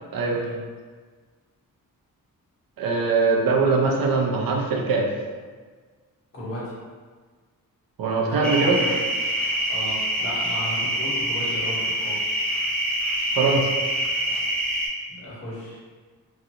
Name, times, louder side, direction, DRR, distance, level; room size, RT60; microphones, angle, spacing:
voice 1, 2.8-5.1 8.0-8.8 13.4-13.7, right 4 dB, 70° right, 0 dB, 0.5 m, -21 dB
voice 2, 6.3-6.8 8.2-9.1 9.7-12.2 15.2-15.8, equal, 40° left, -9 dB, 1.1 m, -34 dB
sound 1, 8.4-14.9, right 1 dB, 5° left, 0.4 m, -25 dB
2.9 x 2.5 x 2.7 m, 1.5 s
wide cardioid pair, 160°, 36 cm